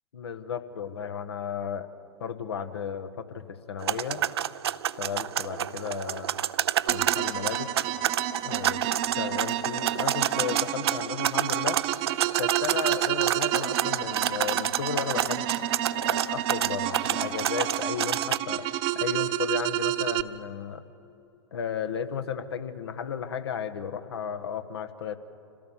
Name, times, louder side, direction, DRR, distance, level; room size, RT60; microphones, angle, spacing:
voice 1, 0.1-1.9 2.2-4.2 5.0-6.3 6.9-7.7 8.4-11.8 12.4-15.5 16.0-18.7 18.9-20.8 21.5-25.2, left 7 dB, 65° left, 10 dB, 1.4 m, -34 dB
sound 1, 3.8-18.4, right 10 dB, 65° right, 0.6 m, -29 dB
sound 2, 6.9-20.2, right 14 dB, 40° right, 1.0 m, -30 dB
26.5 x 17.0 x 7.2 m, 2.9 s
figure-of-eight pair, 100°, 15 cm